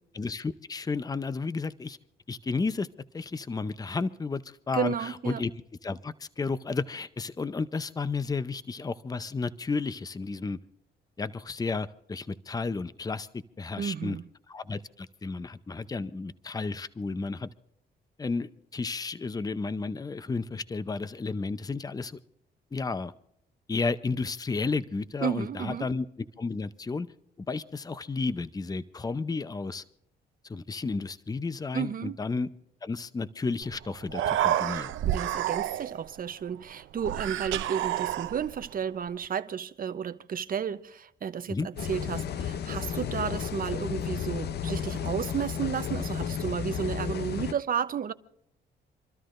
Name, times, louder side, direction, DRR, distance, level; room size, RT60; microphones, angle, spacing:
voice 1, 0.1-2.0 2.3-2.9 3.1-5.5 5.8-10.6 11.2-13.3 13.6-14.2 14.5-17.5 18.2-22.2 22.7-23.1 23.7-27.1 27.4-29.8 30.5-32.5 32.8-34.9 41.5-41.7, left 4 dB, 20° left, 0.6 m, -32 dB
voice 2, 4.7-5.4 13.8-14.2 25.2-25.9 31.7-32.2 35.1-48.1, right 8 dB, 45° right, 0.8 m, -32 dB
Human voice, 33.6-33.7 34.0-36.1 37.0-38.7, right 12 dB, 75° right, 0.6 m, -29 dB
Subway escalator near belt, 41.8-47.5, left 8 dB, 55° left, 0.6 m, -33 dB
27.5 x 13.0 x 2.6 m
cardioid pair, 90°, 20 cm